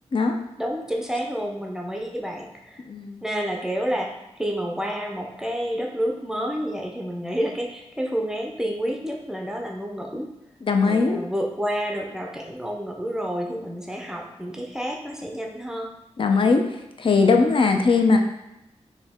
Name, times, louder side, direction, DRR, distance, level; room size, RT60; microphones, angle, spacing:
voice 1, 0.6-2.8 3.2-10.3 10.8-15.9 17.6-17.8, equal, 5° right, 1 dB, 0.6 m, -29 dB
voice 2, 2.9-3.2 10.6-11.2 16.2-16.6 17.0-18.2, left 4 dB, 45° left, 4 dB, 0.5 m, -19 dB
5.0 x 2.7 x 3.5 m, 0.90 s
wide cardioid pair, 110°, 12 cm